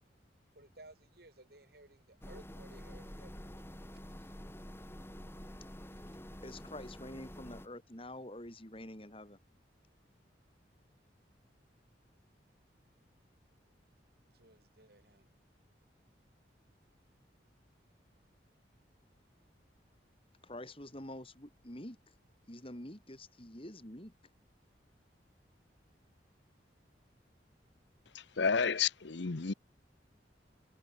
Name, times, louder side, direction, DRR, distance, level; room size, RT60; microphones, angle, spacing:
voice 1, 0.6-4.3 5.9-6.2 14.3-15.3, right 2 dB, 55° right, 5.2 m, -59 dB
sound 1, 2.2-7.7, equal, 15° left, 3.7 m, -48 dB
voice 2, 6.0-9.4 20.4-22.1 22.5-24.1, left 1 dB, 30° left, 5.4 m, -47 dB
voice 3, 28.1-29.5, left 5 dB, 75° left, 0.9 m, -31 dB
head